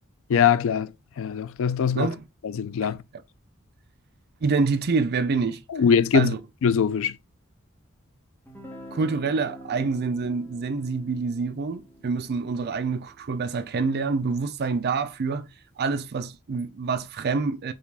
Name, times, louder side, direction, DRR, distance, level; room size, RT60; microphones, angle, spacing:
voice 1, 0.3-2.1 2.4-3.0 5.7-6.3 6.6-7.2, left 7 dB, 65° left, 0.4 m, -22 dB
voice 2, 4.4-5.6 6.1-6.4 8.9-15.5 15.8-17.7, right 4 dB, 50° right, 0.5 m, -26 dB
Guitar, 8.5-14.2, equal, 10° left, 1.1 m, -47 dB
5.1 x 2.4 x 3.4 m
head